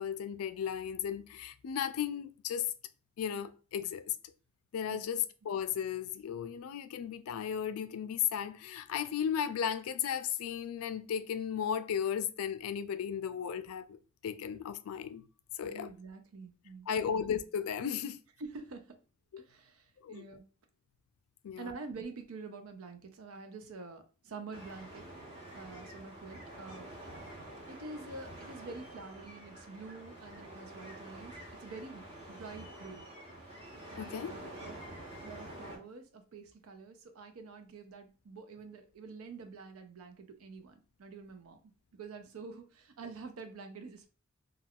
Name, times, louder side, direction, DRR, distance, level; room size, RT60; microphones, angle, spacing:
voice 1, 0.0-2.7 3.2-4.2 4.7-14.0 14.2-15.2 15.6-15.9 16.9-18.2 19.3-19.4 20.0-20.2 21.4-21.7 34.0-34.3, left 8 dB, 80° left, 0.3 m, -35 dB
voice 2, 4.9-5.2 15.6-17.1 18.4-19.0 19.4-20.4 21.6-25.1 25.5-26.9 27.7-33.1 33.9-34.8 35.2-41.6 41.9-44.1, right 4 dB, 80° right, 0.5 m, -47 dB
sound 1, 24.5-35.8, right 1 dB, 25° right, 0.8 m, -48 dB
2.3 x 2.3 x 3.4 m
head